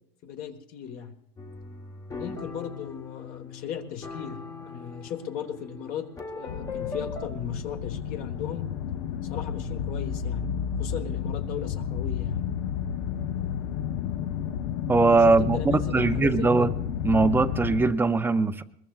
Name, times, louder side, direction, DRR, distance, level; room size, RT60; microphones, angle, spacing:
voice 1, 0.2-1.1 2.1-8.7 9.2-10.5 10.8-12.4 15.4-16.7, left 8 dB, 50° left, 6 dB, 1.4 m, -37 dB
sound 1, 1.4-7.3, left 4 dB, 15° left, 1.0 m, -40 dB
sound 2, 6.5-17.9, left 8 dB, 75° left, 0.9 m, -31 dB
voice 2, 14.9-16.7 17.0-18.6, right 3 dB, 10° right, 11 dB, 0.5 m, -21 dB
21.5 x 21.5 x 2.4 m, 0.75 s
cardioid pair, 155°, 20 cm